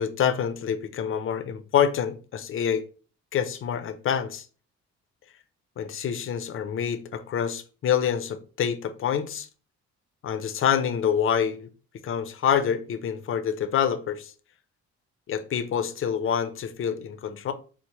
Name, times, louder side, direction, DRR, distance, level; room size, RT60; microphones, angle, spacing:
voice 1, 0.0-2.8 3.3-4.5 5.8-9.5 10.2-11.7 12.0-14.3 15.3-17.5, left 8 dB, 45° left, 0.5 m, -26 dB
4.5 x 2.0 x 2.9 m
cardioid pair, 90°, 30 cm